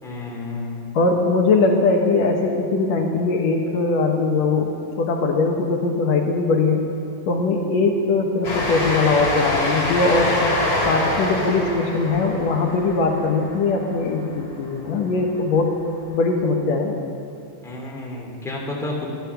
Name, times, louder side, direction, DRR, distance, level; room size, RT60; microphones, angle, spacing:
voice 1, 0.0-0.9 17.6-19.2, left 2 dB, ahead, -3 dB, 2.3 m, -31 dB
voice 2, 0.9-4.7 5.0-6.8 7.3-10.4 10.8-15.7 16.1-17.0, left 3 dB, 70° left, 1 dB, 2.2 m, -20 dB
Train, 8.4-14.6, left 1 dB, 55° left, 4.7 m, -25 dB
14.0 x 12.0 x 6.9 m, 2.4 s
omnidirectional pair, 3.3 m